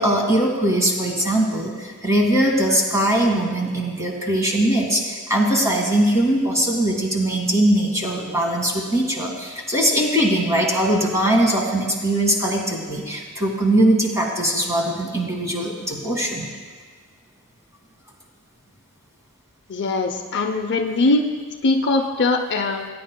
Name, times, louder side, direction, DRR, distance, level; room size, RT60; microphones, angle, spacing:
voice 1, 0.0-16.5, right 1 dB, 15° right, -1 dB, 1.8 m, -21 dB
voice 2, 19.7-21.3 21.6-22.9, left 2 dB, 55° left, 5 dB, 0.6 m, -21 dB
19.0 x 9.4 x 2.2 m, 1.5 s
head